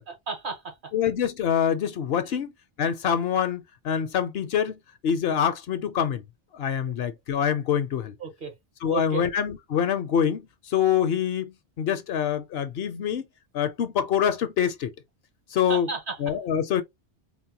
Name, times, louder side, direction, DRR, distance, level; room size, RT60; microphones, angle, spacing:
voice 1, 0.1-0.9 2.2-2.3 8.2-8.5 8.9-9.2 15.7-16.3, right 5 dB, 50° right, 1.0 m, -34 dB
voice 2, 0.9-2.5 2.8-6.2 6.5-8.1 8.8-13.3 13.5-14.9 15.5-15.9 16.2-16.8, left 8 dB, 70° left, 0.7 m, -25 dB
3.9 x 2.1 x 2.7 m
omnidirectional pair, 1.2 m